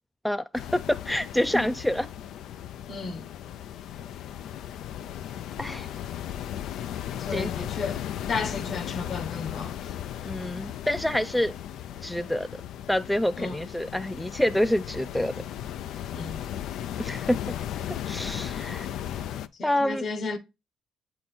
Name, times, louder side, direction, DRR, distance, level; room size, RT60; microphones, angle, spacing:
voice 1, 0.2-2.1 5.6-5.9 7.3-7.5 10.2-11.5 12.0-12.5 12.9-15.3 17.0-17.5 17.9-18.9 19.6-20.1, left 1 dB, 5° left, 0.4 m, -27 dB
sound 1, 0.5-19.5, left 10 dB, 75° left, 0.4 m, -36 dB
voice 2, 2.9-3.3 7.2-8.0 8.3-10.0 13.4-13.6 16.1-16.4 19.6-20.4, left 4 dB, 50° left, 1.1 m, -33 dB
7.9 x 3.8 x 4.2 m
supercardioid pair, 80°, 0 cm